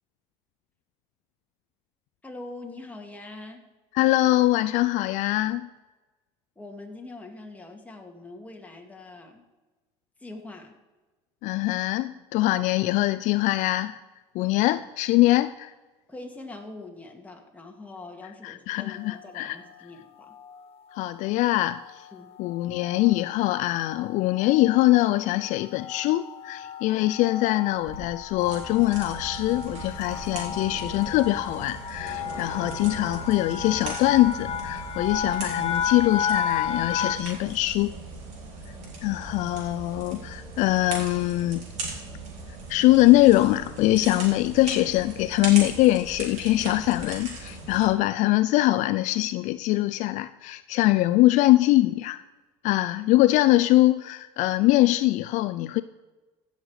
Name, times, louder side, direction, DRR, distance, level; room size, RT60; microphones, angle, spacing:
voice 1, 2.2-3.6 6.6-9.4 10.2-10.7 16.1-20.3 22.1-22.3, left 2 dB, 10° left, 1 dB, 2.2 m, -43 dB
voice 2, 3.9-5.7 11.4-14.0 14.3-15.7 18.4-19.6 20.9-22.1 22.4-37.9 39.0-41.7 42.7-52.2 52.6-55.8, left 17 dB, 60° left, 13 dB, 0.4 m, -23 dB
sound 1, 19.0-19.5 20.2-20.6 20.9-21.1 21.4-37.2, left 7 dB, 45° left, 0.8 m, -34 dB
sound 2, 27.8-35.3, right 1 dB, 25° right, 3.3 m, -46 dB
sound 3, 28.4-47.9, right 3 dB, 60° right, 4.2 m, -39 dB
15.5 x 6.5 x 4.9 m, 1.2 s
supercardioid pair, 95°, 14 cm